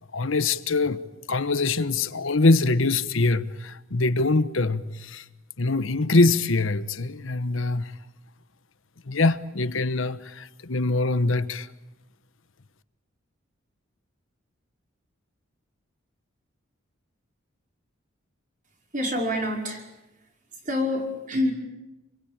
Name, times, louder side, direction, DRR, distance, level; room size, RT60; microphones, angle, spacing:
voice 1, 0.1-1.0 1.3-5.2 5.6-7.9 9.1-11.7, left 3 dB, 75° left, 1.2 m, -23 dB
voice 2, 18.9-19.9 20.6-21.5, left 1 dB, 40° right, 5.2 m, -26 dB
28.5 x 23.0 x 8.9 m
head